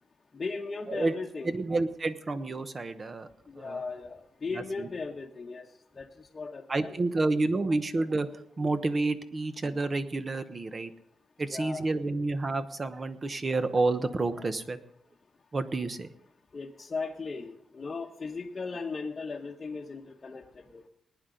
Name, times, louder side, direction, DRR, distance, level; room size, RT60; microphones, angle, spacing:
voice 1, 0.3-1.5 3.5-5.7 6.0-6.9 11.5-11.8 16.5-20.4 20.7-20.8, left 4 dB, 35° left, -2 dB, 1.0 m, -37 dB
voice 2, 1.4-3.3 3.6-3.8 4.5-4.9 6.7-10.9 11.4-14.8 15.5-16.1, right 3 dB, 30° right, 10 dB, 1.0 m, -29 dB
19.5 x 10.0 x 3.9 m, 0.71 s
cardioid pair, 115°, 0 cm